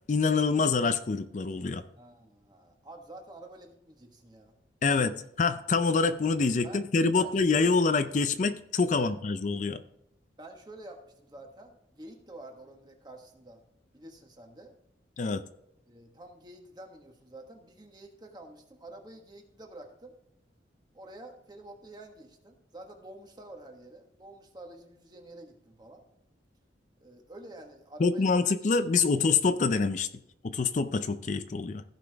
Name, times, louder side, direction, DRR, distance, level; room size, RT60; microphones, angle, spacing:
voice 1, 0.1-1.9 4.8-9.8 15.2-15.4 28.0-30.1 30.4-31.8, left 4 dB, 40° left, 11 dB, 0.4 m, -26 dB
voice 2, 2.0-4.6 4.9-5.2 6.6-6.8 7.2-7.8 8.9-9.1 10.4-13.6 13.9-14.7 15.9-20.1 20.9-26.0 27.0-28.4 29.1-29.2, right 1 dB, 25° right, 3 dB, 1.4 m, -48 dB
15.5 x 5.7 x 3.5 m, 0.80 s
head